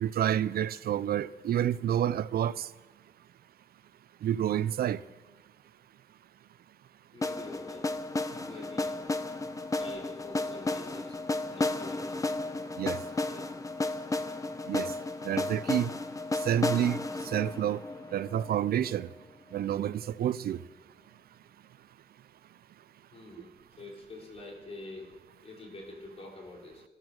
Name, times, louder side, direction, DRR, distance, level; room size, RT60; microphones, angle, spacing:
voice 1, 0.0-2.7 4.2-5.0 12.8-13.0 14.7-14.9 15.3-15.9 16.5-17.0 17.3-17.8 18.1-19.1 19.5-20.6, right 10 dB, 85° right, 0.5 m, -28 dB
voice 2, 7.1-7.9 8.4-9.0 9.8-11.2 11.5-12.2 13.1-13.5 23.1-23.5 23.8-25.1 25.4-26.8, left 2 dB, 40° left, 4.3 m, -46 dB
sound 1, 7.2-19.1, left 2 dB, 20° left, 0.8 m, -33 dB
18.0 x 12.5 x 6.4 m
wide cardioid pair, 125°, 15 cm